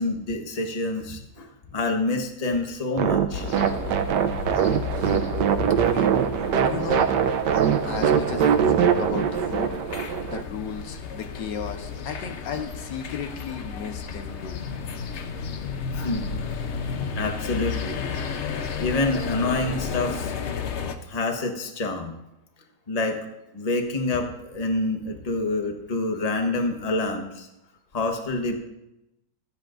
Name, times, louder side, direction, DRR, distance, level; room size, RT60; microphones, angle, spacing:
voice 1, 0.0-1.5 1.7-3.5 5.9-6.0 16.0-16.3 17.2-18.0 18.8-20.3 21.1-22.2 22.9-23.2 23.5-27.5 27.9-28.5, left 2 dB, 25° left, 3 dB, 1.1 m, -27 dB
sound 1, 3.0-10.4, right 8 dB, 80° right, 1.3 m, -22 dB
sound 2, 3.3-21.0, left 6 dB, 55° left, 0.9 m, -33 dB
voice 2, 5.8-7.2 7.8-9.8 10.3-14.6, left 6 dB, 85° left, 6 dB, 1.7 m, -34 dB
24.5 x 8.2 x 2.6 m, 0.89 s
omnidirectional pair, 1.9 m